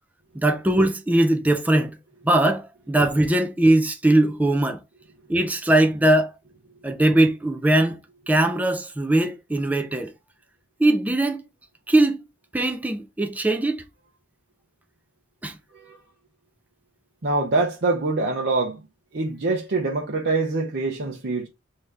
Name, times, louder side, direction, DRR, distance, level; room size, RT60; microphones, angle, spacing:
voice 1, 0.4-1.9 2.2-4.8 5.3-6.3 6.8-8.0 8.3-10.1 10.8-11.4 11.9-12.2 12.5-13.8 15.4-15.5, right 1 dB, 10° right, 0.4 m, -20 dB
voice 2, 17.2-18.8 19.1-21.5, right 3 dB, 55° right, 0.7 m, -24 dB
3.3 x 2.8 x 3.5 m
head